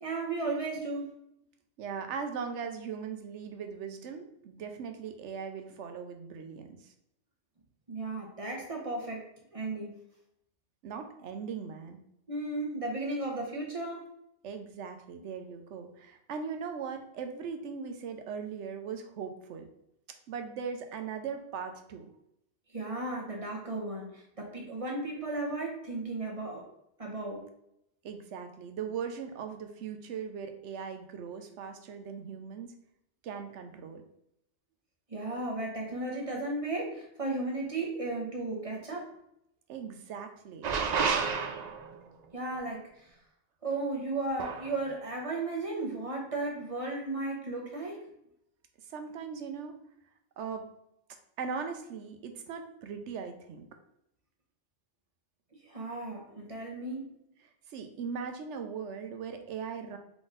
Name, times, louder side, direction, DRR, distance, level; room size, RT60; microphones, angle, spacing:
voice 1, 0.0-1.1 7.9-9.2 9.5-9.9 12.3-14.1 22.7-26.6 27.0-27.4 35.1-39.1 42.3-43.1 43.6-48.0 55.6-57.1, right 2 dB, 30° right, -1 dB, 1.1 m, -35 dB
voice 2, 1.8-6.9 10.8-12.0 14.4-19.7 20.3-22.1 28.0-32.7 33.2-34.0 39.7-40.7 48.9-49.8 50.4-50.7 51.4-53.7 57.4-60.0, right 6 dB, 85° right, 6 dB, 1.0 m, -39 dB
sound 1, 40.6-42.0 44.4-44.7, right 5 dB, 55° right, 0.5 m, -30 dB
3.9 x 3.6 x 3.8 m, 0.78 s
omnidirectional pair, 1.2 m